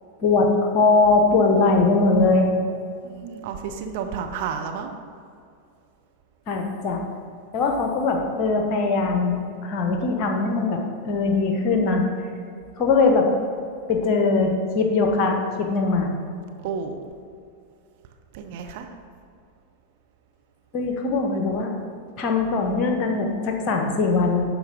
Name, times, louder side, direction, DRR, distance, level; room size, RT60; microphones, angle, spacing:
voice 1, 0.2-2.5 6.5-7.0 7.5-10.8 11.1-12.0 12.8-13.3 13.9-16.1 20.7-21.7 22.2-24.4, left 3 dB, 40° left, 3 dB, 1.1 m, -21 dB
voice 2, 3.0-4.9 16.6-17.0 18.3-18.9, right 6 dB, 50° right, 5 dB, 0.7 m, -31 dB
12.0 x 4.7 x 3.7 m, 2.4 s
figure-of-eight pair, 90°, 0 cm